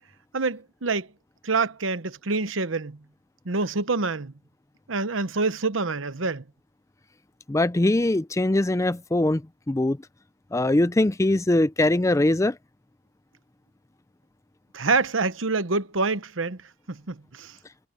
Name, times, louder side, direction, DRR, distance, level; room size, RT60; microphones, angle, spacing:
voice 1, 0.3-1.1 1.4-3.0 3.5-4.3 4.9-6.4 14.7-16.6 16.9-17.5, right 3 dB, 75° right, 1.1 m, -26 dB
voice 2, 7.5-9.4 9.7-10.0 10.5-12.6, left 1 dB, 15° left, 0.5 m, -22 dB
head